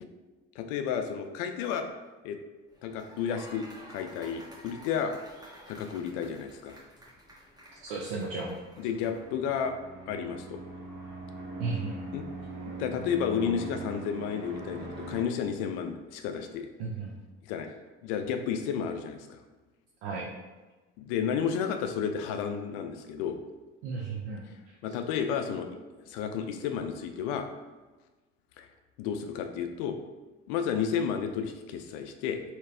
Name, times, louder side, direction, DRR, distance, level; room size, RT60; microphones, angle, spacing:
voice 1, 0.6-1.9 2.2-2.4 2.8-5.1 5.7-6.8 8.8-9.7 10.1-10.6 12.1-12.3 12.8-16.7 17.5-17.7 18.0-19.4 21.0-23.4 24.8-25.7 26.0-27.5 28.6-28.7 29.0-30.0 30.5-32.4, left 7 dB, 55° left, 6 dB, 0.4 m, -32 dB
sound 1, 2.7-9.3, equal, 10° right, 0.8 m, -52 dB
voice 2, 7.8-8.6 11.6-12.0 16.8-17.2 20.0-20.3 23.8-24.7, right 4 dB, 65° right, -3 dB, 0.5 m, -34 dB
sound 2, 7.9-15.2, right 2 dB, 40° right, 1.0 m, -42 dB
3.8 x 2.0 x 2.4 m, 1.2 s
figure-of-eight pair, 55°, 35 cm